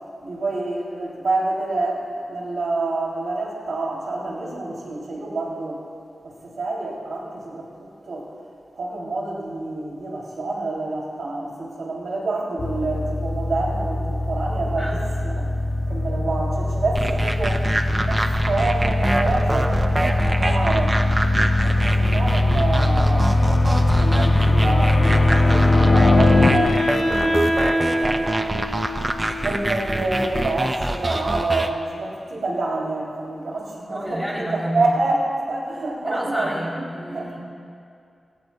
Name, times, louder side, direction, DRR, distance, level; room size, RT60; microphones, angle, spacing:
voice 1, 0.2-5.8 6.2-7.7 8.1-8.3 8.8-15.0 15.2-15.4 15.9-17.7 18.0-21.0 21.6-23.4 23.9-28.4 29.4-34.2 34.7-37.4, right 2 dB, 85° right, -4 dB, 3.4 m, -27 dB
sound 1, 12.6-26.5, left 2 dB, 45° left, 1.2 m, -20 dB
sound 2, 16.9-31.7, right 1 dB, 20° right, 0.7 m, -26 dB
Wind instrument woodwind instrument, 25.0-30.0, left 1 dB, 65° left, 4.1 m, -25 dB
voice 2, 33.9-34.9 36.0-37.4, equal, ahead, -4 dB, 3.6 m, -29 dB
21.5 x 17.0 x 2.4 m, 2.4 s
wide cardioid pair, 90°, 0 cm